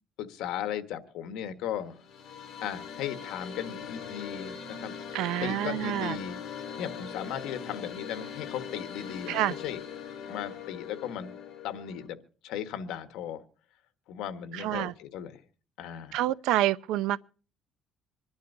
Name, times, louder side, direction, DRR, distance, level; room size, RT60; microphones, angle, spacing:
voice 1, 0.2-2.0 2.6-4.9 5.4-6.4 6.8-9.8 10.3-11.3 11.6-12.2 12.4-13.4 14.1-15.4 15.8-16.2, left 9 dB, 85° left, 1.3 m, -36 dB
sound 1, 1.8-12.1, left 7 dB, 50° left, 3.6 m, -41 dB
voice 2, 5.1-6.2 9.3-9.6 14.5-14.9 16.1-17.2, right 14 dB, 85° right, 0.6 m, -28 dB
25.5 x 11.5 x 2.7 m
cardioid pair, 160°, 0 cm